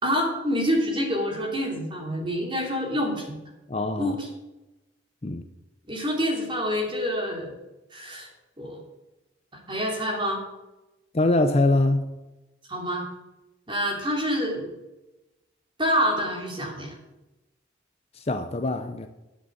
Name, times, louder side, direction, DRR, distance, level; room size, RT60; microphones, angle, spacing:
voice 1, 0.0-3.4 4.0-4.3 5.9-7.6 7.9-8.3 8.6-8.8 9.7-10.4 12.7-13.0 13.7-14.7 15.8-17.0, equal, 25° right, 3.1 m, -27 dB
voice 2, 3.7-4.2 5.2-5.5 11.1-12.1 18.2-19.1, left 2 dB, 35° left, 0.6 m, -23 dB
9.8 x 7.7 x 7.9 m
head